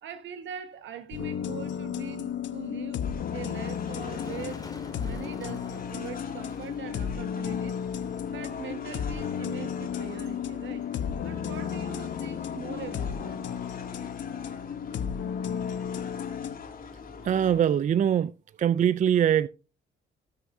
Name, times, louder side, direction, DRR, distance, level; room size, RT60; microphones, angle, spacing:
voice 1, 0.0-3.0 3.3-4.6 4.9-7.7 8.3-10.9 11.2-13.4, right 7 dB, 70° right, 1.4 m, -42 dB
sound 1, 1.1-16.5, left 8 dB, 70° left, 0.9 m, -34 dB
Motor vehicle (road), 2.9-15.6, left 3 dB, 20° left, 2.1 m, -52 dB
sound 2, 3.0-17.6, left 5 dB, 45° left, 2.4 m, -43 dB
voice 2, 17.2-18.3 18.6-19.5, right 9 dB, 40° right, 0.4 m, -22 dB
17.5 x 6.6 x 2.6 m
cardioid pair, 90°, 20 cm